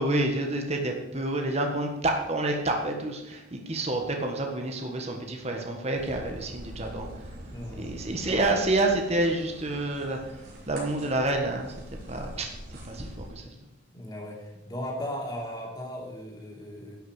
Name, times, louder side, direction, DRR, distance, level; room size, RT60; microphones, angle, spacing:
voice 1, 0.0-7.1 7.8-10.2 10.7-11.7 12.1-12.5 12.8-13.5, right 2 dB, 35° right, 2 dB, 1.5 m, -28 dB
sound 1, 5.9-13.3, right 1 dB, 55° right, 4.9 m, -44 dB
voice 2, 7.5-8.1 13.9-17.0, equal, 20° left, -2 dB, 3.1 m, -37 dB
11.5 x 6.4 x 8.1 m, 0.96 s
head